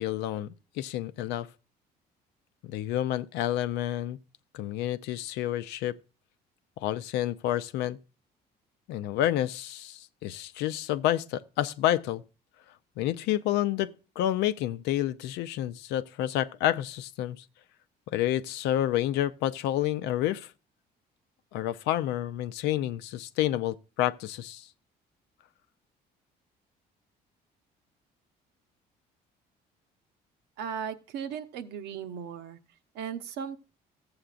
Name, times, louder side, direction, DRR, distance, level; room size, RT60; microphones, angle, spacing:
voice 1, 0.0-1.5 2.6-4.2 4.5-6.0 6.8-8.0 8.9-12.2 13.0-17.4 18.1-20.5 21.5-24.7, left 13 dB, 90° left, 0.6 m, -29 dB
voice 2, 30.6-32.6 32.9-33.6, right 7 dB, 85° right, 1.0 m, -36 dB
14.5 x 7.8 x 2.5 m
cardioid pair, 110°, 17 cm